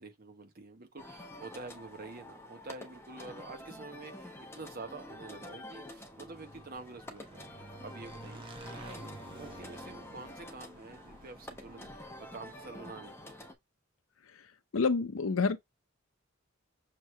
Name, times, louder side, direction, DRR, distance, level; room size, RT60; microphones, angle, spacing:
voice 1, 0.0-13.1, right 3 dB, 45° right, 1.2 m, -48 dB
sound 1, 1.0-13.5, left 1 dB, 10° left, 0.9 m, -48 dB
Motorcycle / Engine, 5.9-13.2, right 2 dB, 25° right, 0.9 m, -51 dB
voice 2, 14.7-15.6, left 4 dB, 80° left, 0.6 m, -28 dB
6.5 x 3.1 x 2.2 m
head